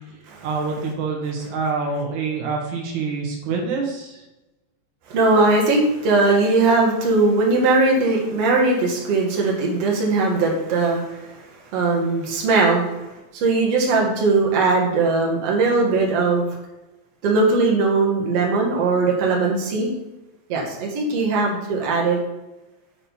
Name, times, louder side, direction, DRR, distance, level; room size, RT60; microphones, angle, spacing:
voice 1, 0.4-4.2, right 4 dB, 80° right, 0 dB, 2.6 m, -26 dB
voice 2, 5.1-11.4 11.7-12.9 13.3-16.5 17.2-19.9 20.5-22.2, right 3 dB, 60° right, -1 dB, 2.4 m, -19 dB
7.8 x 4.2 x 5.4 m, 1.0 s
omnidirectional pair, 3.4 m